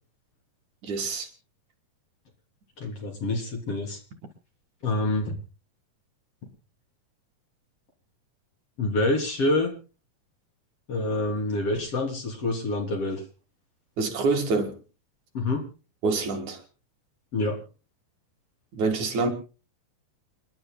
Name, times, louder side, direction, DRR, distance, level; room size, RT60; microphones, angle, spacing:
voice 1, 0.8-1.3 14.0-14.8 16.0-16.6 18.7-19.3, right 3 dB, 60° right, 3.0 m, -26 dB
voice 2, 2.8-4.0 4.8-5.4 8.8-9.7 10.9-13.2 15.3-15.6 17.3-17.6, left 2 dB, 45° left, 4.3 m, -27 dB
29.0 x 11.5 x 2.3 m
omnidirectional pair, 4.1 m